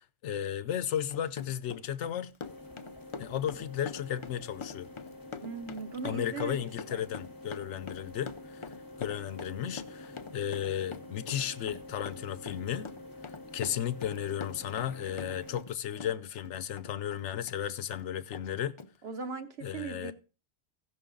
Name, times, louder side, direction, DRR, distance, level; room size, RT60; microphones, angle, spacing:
voice 1, 0.0-2.3 3.2-4.9 6.0-8.7 9.0-12.9 13.5-18.7 19.6-20.1, left 10 dB, 70° left, 0.9 m, -34 dB
Run, 0.9-15.7 16.0-17.6 17.9-18.0 18.3-18.5 18.8-18.9, left 5 dB, 40° left, 0.4 m, -44 dB
sound 1, 2.4-15.6, left 2 dB, 20° left, 1.0 m, -48 dB
voice 2, 5.4-7.1 19.0-20.1, right 5 dB, 60° right, 1.0 m, -39 dB
16.0 x 6.1 x 3.8 m
omnidirectional pair, 1.3 m